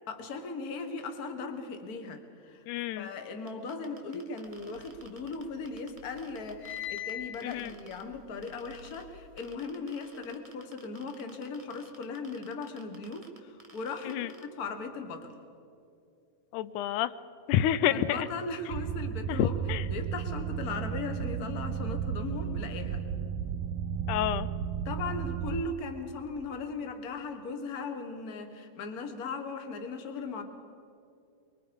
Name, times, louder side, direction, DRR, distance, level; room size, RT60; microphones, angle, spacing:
voice 1, 0.1-2.6 3.0-15.3 17.9-19.6 19.9-23.0 24.8-30.4, left 4 dB, 40° left, 6 dB, 1.5 m, -38 dB
voice 2, 2.7-3.1 7.4-7.7 14.0-14.3 16.5-17.1 17.5-18.3 19.3-19.9 24.1-24.5, left 11 dB, 85° left, 15 dB, 2.1 m, -29 dB
sound 1, 3.5-8.0 8.4-9.0 9.4-14.4, right 3 dB, 20° right, 1.0 m, -53 dB
sound 2, 4.6-5.7 6.0-9.4, left 10 dB, 65° left, 1.3 m, -42 dB
sound 3, 18.7-25.6, right 8 dB, 70° right, 1.8 m, -34 dB
24.0 x 23.5 x 5.2 m, 2.5 s
omnidirectional pair, 3.5 m